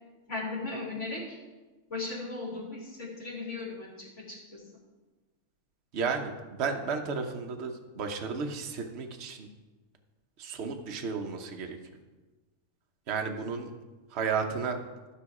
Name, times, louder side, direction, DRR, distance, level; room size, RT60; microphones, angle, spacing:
voice 1, 0.3-1.4 1.9-4.1 4.5-4.6, left 3 dB, 50° left, -5 dB, 3.8 m, -36 dB
voice 2, 5.9-9.5 10.4-11.8 13.1-13.7 14.1-14.8, right 5 dB, 50° right, 4 dB, 1.1 m, -33 dB
13.0 x 6.1 x 4.8 m, 1.2 s
omnidirectional pair, 1.5 m